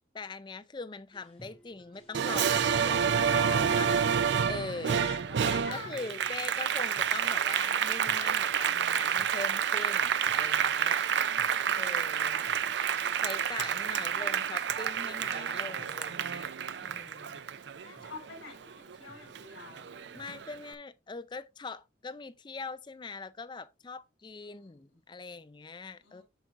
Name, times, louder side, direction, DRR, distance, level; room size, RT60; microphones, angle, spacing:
voice 1, 0.1-3.9 4.4-11.0 11.8-12.5 13.2-16.5 16.8-17.5 20.1-26.2, left 3 dB, 25° left, 0.4 m, -42 dB
sound 1, 1.1-20.5, right 1 dB, 5° left, 3.6 m, -59 dB
Applause, 2.1-19.0 19.4-20.5, right 7 dB, 65° right, 0.4 m, -29 dB
voice 2, 3.3-4.0 5.0-6.2 11.2-12.7 13.9-14.4 17.8-19.9 24.4-25.0 26.0-26.2, left 4 dB, 75° left, 3.2 m, -47 dB
8.0 x 6.0 x 2.5 m
head